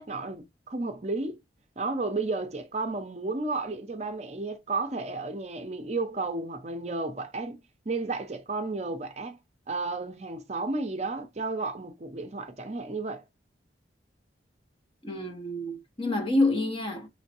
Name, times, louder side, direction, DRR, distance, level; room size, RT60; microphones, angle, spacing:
voice 1, 0.0-1.4 1.8-7.6 7.9-9.4 9.7-13.2, right 3 dB, 35° right, 0.6 m, -32 dB
voice 2, 15.0-17.1, left 2 dB, 30° left, 1.1 m, -27 dB
5.5 x 3.3 x 2.8 m
head